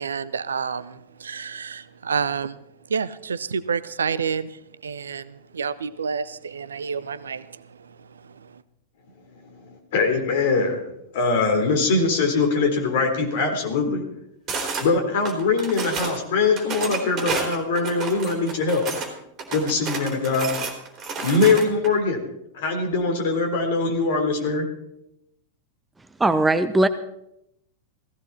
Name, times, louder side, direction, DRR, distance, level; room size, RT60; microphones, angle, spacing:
voice 1, 0.0-8.6, right 6 dB, 70° right, 17 dB, 0.7 m, -30 dB
voice 2, 9.4-14.0 14.8-18.9 19.5-20.5 21.2-22.3 22.5-24.7, left 4 dB, 55° left, 4 dB, 3.7 m, -22 dB
sound 1, 14.5-14.9 15.2-16.2 16.6-19.1 19.4-21.9, right 4 dB, 30° right, 3.6 m, -30 dB
voice 3, 26.2-26.9, right 2 dB, 10° right, 11 dB, 0.7 m, -19 dB
17.5 x 15.5 x 4.3 m, 0.81 s
figure-of-eight pair, 90°, 0 cm